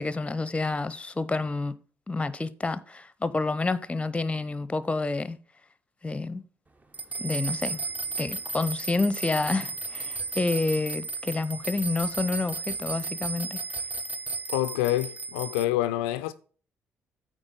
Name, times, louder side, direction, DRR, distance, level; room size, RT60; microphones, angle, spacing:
voice 1, 0.0-1.8 2.1-5.4 6.0-6.4 7.2-7.8 8.2-13.6, left 3 dB, 20° left, 0.7 m, -29 dB
sound 1, 6.9-15.6, right 3 dB, 25° right, 0.9 m, -34 dB
voice 2, 14.5-16.3, left 14 dB, 75° left, 0.4 m, -27 dB
8.9 x 3.8 x 6.6 m
figure-of-eight pair, 45°, 7 cm